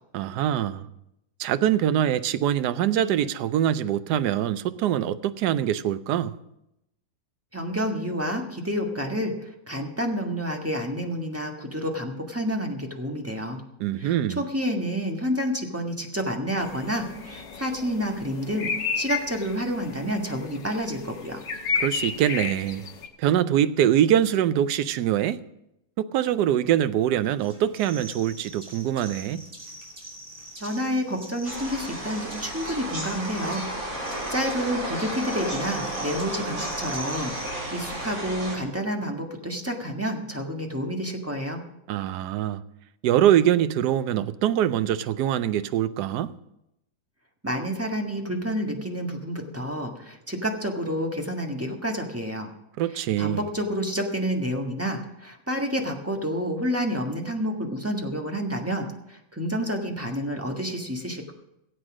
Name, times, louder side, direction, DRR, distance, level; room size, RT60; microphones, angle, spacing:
voice 1, 0.1-0.9 1.4-6.3 13.8-14.4 21.7-22.8 23.2-25.4 26.0-29.4 41.9-42.6 43.0-46.3 52.8-53.4, right 11 dB, 70° right, 1.1 m, -23 dB
voice 2, 7.5-13.6 14.0-21.4 30.6-33.6 33.9-41.6 47.4-52.5 52.9-61.3, equal, 10° right, 1.3 m, -29 dB
sound 1, 16.6-23.1, left 5 dB, 75° left, 2.0 m, -33 dB
sound 2, 27.4-38.3, right 1 dB, 30° right, 3.3 m, -43 dB
sound 3, 31.4-38.6, right 1 dB, 45° right, 5.1 m, -33 dB
16.5 x 8.2 x 6.2 m
omnidirectional pair, 2.0 m